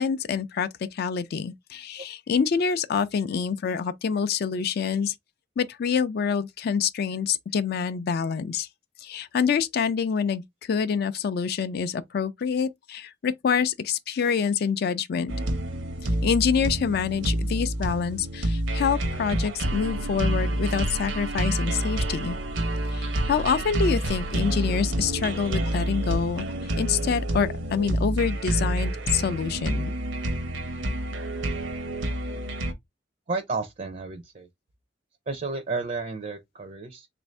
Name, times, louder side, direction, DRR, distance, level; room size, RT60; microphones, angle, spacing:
voice 1, 0.0-5.1 5.6-8.7 9.0-15.3 16.2-22.4 22.9-29.9, left 6 dB, 55° left, 0.4 m, -26 dB
sound 1, 15.3-32.7, right 1 dB, 80° right, 0.8 m, -28 dB
voice 2, 33.3-34.5 35.3-37.1, right 3 dB, 40° right, 0.5 m, -32 dB
3.4 x 2.6 x 3.2 m
head